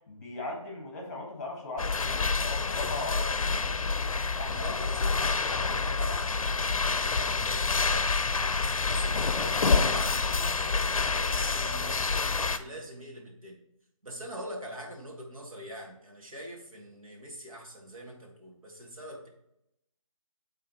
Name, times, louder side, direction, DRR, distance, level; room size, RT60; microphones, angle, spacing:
voice 1, 0.0-4.8, left 2 dB, 30° left, 0 dB, 1.5 m, -40 dB
sound 1, 1.8-12.6, left 4 dB, 75° left, 0.5 m, -28 dB
voice 2, 2.8-4.0 4.4-8.1 8.5-13.6 14.0-19.3, equal, 75° right, -1 dB, 2.0 m, -44 dB
8.9 x 3.8 x 3.0 m, 0.80 s
figure-of-eight pair, 170°, 18 cm